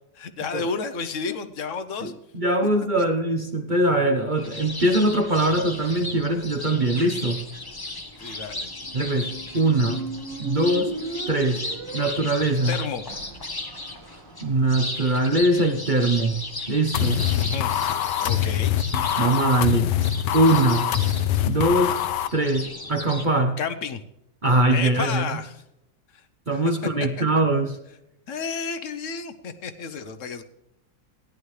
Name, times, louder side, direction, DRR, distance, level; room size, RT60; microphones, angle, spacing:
voice 1, 0.2-2.1 8.2-8.7 12.7-13.0 17.3-17.7 18.2-18.8 23.6-24.0 24.7-25.6 26.1-26.2 28.3-30.4, left 5 dB, 55° left, 11 dB, 1.0 m, -31 dB
voice 2, 2.0-7.4 8.9-10.1 10.4-10.9 11.3-11.6 11.9-12.8 14.4-16.4 16.7-17.2 18.9-19.9 20.3-20.9 21.4-22.0 22.3-23.6 24.4-25.2 26.5-27.8, right 2 dB, 45° right, 5 dB, 0.6 m, -22 dB
sound 1, 4.4-23.3, left 2 dB, 20° left, 0.6 m, -36 dB
Squeak, 8.8-14.8, right 5 dB, 85° right, 1.6 m, -37 dB
sound 2, 16.9-22.3, left 11 dB, 75° left, 1.2 m, -24 dB
17.0 x 11.0 x 3.2 m, 0.86 s
omnidirectional pair, 1.9 m